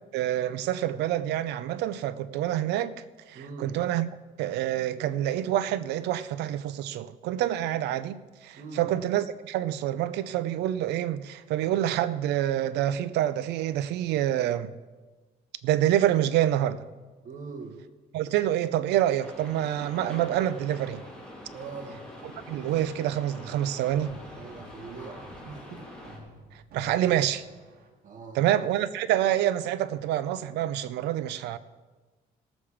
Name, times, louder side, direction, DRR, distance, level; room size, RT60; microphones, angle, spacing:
voice 1, 0.1-2.9 3.3-4.1 4.4-14.7 15.6-16.9 18.1-21.0 22.5-24.1 26.7-27.4 28.3-31.6, right 12 dB, 85° right, 0.7 m, -27 dB
voice 2, 3.3-3.8 8.6-8.9 17.2-17.8 21.5-22.1 24.4-25.9 28.0-28.5, right 4 dB, 50° right, 1.8 m, -42 dB
sound 1, 19.2-26.2, left 1 dB, 5° left, 3.2 m, -45 dB
sound 2, 22.1-23.0 24.0-25.6 26.0-27.9, right 1 dB, 65° right, 2.0 m, -51 dB
18.0 x 7.3 x 5.0 m
cardioid pair, 110°, 17 cm